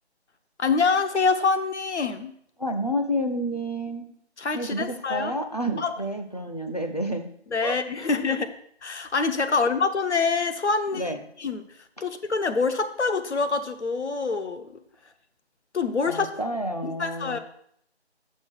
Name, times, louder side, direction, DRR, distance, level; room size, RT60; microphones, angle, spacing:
voice 1, 0.6-2.3 4.4-5.3 5.8-5.9 7.5-8.5 8.8-11.1 11.4-11.7 12.0-14.7 15.7-16.3 16.8-17.4, left 4 dB, 80° left, 9 dB, 0.9 m, -25 dB
voice 2, 2.6-4.1 4.5-7.3 7.6-8.1 9.5-9.6 10.9-11.2 16.1-17.4, equal, 35° left, 5 dB, 0.5 m, -30 dB
6.2 x 4.5 x 5.9 m, 0.67 s
figure-of-eight pair, 180°, 33 cm